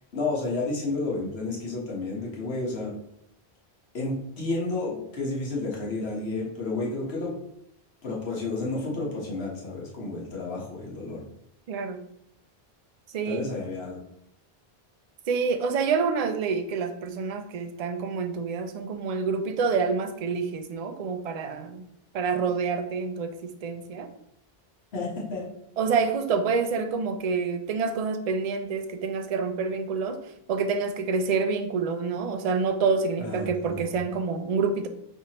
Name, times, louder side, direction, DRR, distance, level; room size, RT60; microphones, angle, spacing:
voice 1, 0.1-2.9 3.9-7.3 8.0-11.2 13.2-14.0 24.9-25.5 33.2-33.9, left 3 dB, 80° left, -3 dB, 1.4 m, -31 dB
voice 2, 11.7-12.0 13.1-13.5 15.3-21.8 22.1-24.1 25.8-30.2 30.5-34.9, right 5 dB, 55° right, 7 dB, 0.4 m, -27 dB
4.3 x 3.3 x 2.9 m, 0.76 s
omnidirectional pair, 1.1 m